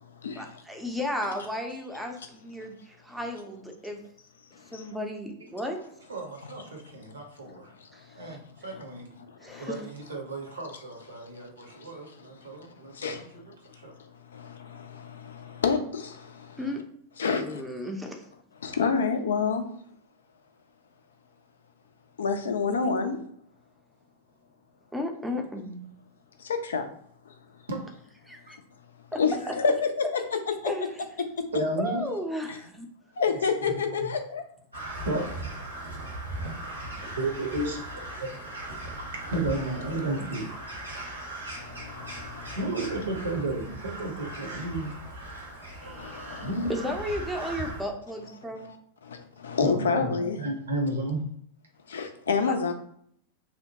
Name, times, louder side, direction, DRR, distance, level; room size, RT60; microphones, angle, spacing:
voice 1, 0.4-4.0 4.7-5.8 7.9-8.1 9.4-9.8 16.6-16.8 17.3-18.2 24.9-25.8 28.2-28.6 29.1-29.2 29.5-29.6 30.7-31.0 31.8-32.9 42.5-42.6 45.8-48.7, left 1 dB, 5° right, 2 dB, 0.5 m, -34 dB
voice 2, 6.1-7.7 8.1-9.1 9.6-13.4 13.8-13.9 27.7-27.8 31.5-32.0 33.5-34.1 35.0-35.4 37.2-38.3 39.3-40.5 42.6-45.0 45.8-46.1 46.4-46.7 49.6-51.2, right 2 dB, 70° right, 2 dB, 0.7 m, -33 dB
voice 3, 14.3-16.5 17.2-17.6 18.6-19.6 22.2-23.2 26.4-26.9 29.2-30.0 30.6-30.7 33.2-34.4 41.7-42.6 46.0-46.5 49.1-50.4 51.9-52.7, left 5 dB, 65° left, 6 dB, 0.4 m, -28 dB
Crow, 34.7-47.8, right 1 dB, 85° right, 1.1 m, -39 dB
2.8 x 2.0 x 2.8 m, 0.66 s
figure-of-eight pair, 90°, 0 cm